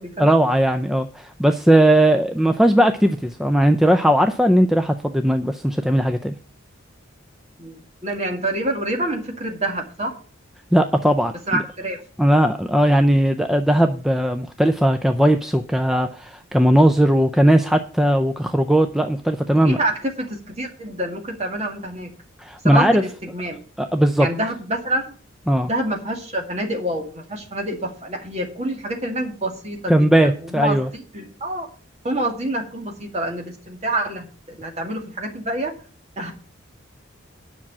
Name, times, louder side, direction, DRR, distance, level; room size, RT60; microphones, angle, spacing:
voice 1, 0.2-6.3 10.7-11.6 12.2-19.8 22.4-23.0 23.8-24.3 25.5-25.7 29.9-30.9, right 1 dB, ahead, 7 dB, 0.4 m, -18 dB
voice 2, 7.6-10.1 11.5-12.0 19.5-22.1 22.6-23.6 24.2-25.0 25.6-31.7 32.0-35.7 36.2-36.3, right 1 dB, 30° right, 2 dB, 2.0 m, -27 dB
10.0 x 6.0 x 7.3 m, 0.41 s
head